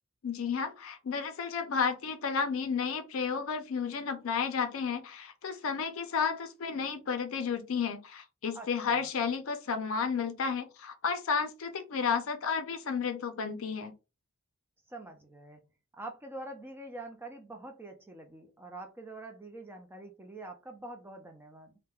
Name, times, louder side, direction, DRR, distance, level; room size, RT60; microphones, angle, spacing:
voice 1, 0.2-13.9, left 6 dB, 65° left, 0.4 m, -32 dB
voice 2, 8.5-9.1 14.9-15.6 15.9-21.8, right 2 dB, 10° right, 0.4 m, -45 dB
3.0 x 2.1 x 2.3 m
head